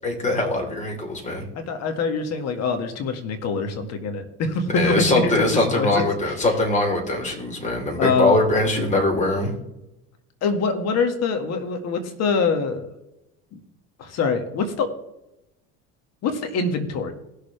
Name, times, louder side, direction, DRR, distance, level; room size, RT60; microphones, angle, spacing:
voice 1, 0.0-1.4 4.7-9.5, left 2 dB, 25° left, 0 dB, 3.8 m, -22 dB
voice 2, 1.7-5.4 5.7-6.0 8.0-8.4 10.4-12.9 14.0-14.9 16.2-17.1, left 4 dB, 55° left, 6 dB, 1.9 m, -24 dB
19.0 x 6.8 x 3.4 m, 0.89 s
supercardioid pair, 110°, 31 cm